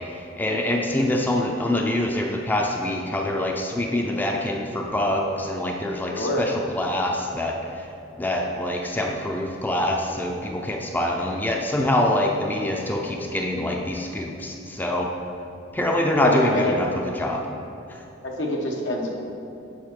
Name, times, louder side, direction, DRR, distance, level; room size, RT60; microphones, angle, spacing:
voice 1, 0.4-7.6 8.2-15.1 15.7-16.9 17.2-17.5, left 1 dB, 10° left, 1 dB, 0.4 m, -25 dB
voice 2, 6.1-6.5 16.2-16.8 18.2-19.1, left 1 dB, 80° left, -1 dB, 1.1 m, -25 dB
7.3 x 5.0 x 4.5 m, 2.7 s
head